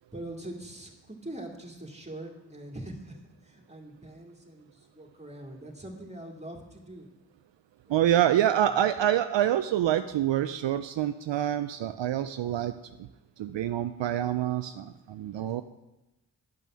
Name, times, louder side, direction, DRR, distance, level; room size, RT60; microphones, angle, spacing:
voice 1, 0.1-7.1 8.6-8.8 15.4-15.6, right 1 dB, 15° right, 1 dB, 2.4 m, -43 dB
voice 2, 7.9-12.7 13.4-15.6, right 11 dB, 75° right, 10 dB, 0.5 m, -26 dB
10.5 x 5.5 x 6.2 m, 0.98 s
cardioid pair, 40°, 45 cm